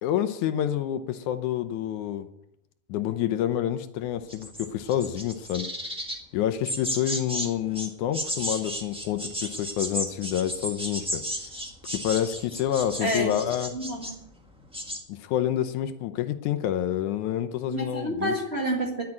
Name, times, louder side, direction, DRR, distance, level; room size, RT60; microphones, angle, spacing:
voice 1, 0.0-2.3 2.9-5.7 6.3-11.2 11.9-13.7 15.1-18.3, left 11 dB, 80° left, 9 dB, 2.2 m, -28 dB
sound 1, 4.3-6.2 6.6-7.5 7.7-14.2 14.6-15.0, equal, 5° right, 0.7 m, -33 dB
voice 2, 13.0-13.4 13.7-14.2 17.7-19.0, right 1 dB, 25° right, -2 dB, 1.5 m, -29 dB
10.5 x 8.4 x 8.6 m, 0.81 s
omnidirectional pair, 3.5 m